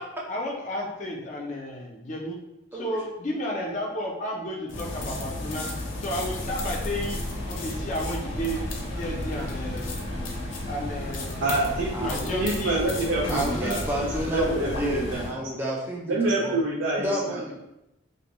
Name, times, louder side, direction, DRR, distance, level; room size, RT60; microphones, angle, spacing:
voice 1, 0.3-2.4 2.7-5.7 6.0-7.2 7.5-8.6 8.9-10.1 10.7-11.5 12.0-12.8, equal, 40° left, -2 dB, 0.5 m, -32 dB
sound 1, 4.7-15.3, left 1 dB, 85° left, 0.5 m, -33 dB
sound 2, 6.2-15.2, equal, 40° right, 0.8 m, -38 dB
voice 2, 11.4-11.9 12.2-15.3 16.1-17.4, right 2 dB, 80° right, -4 dB, 0.4 m, -27 dB
voice 3, 11.9-12.5 13.3-16.6 17.0-17.5, equal, 10° right, -3 dB, 0.4 m, -30 dB
2.5 x 2.2 x 2.9 m, 0.89 s
head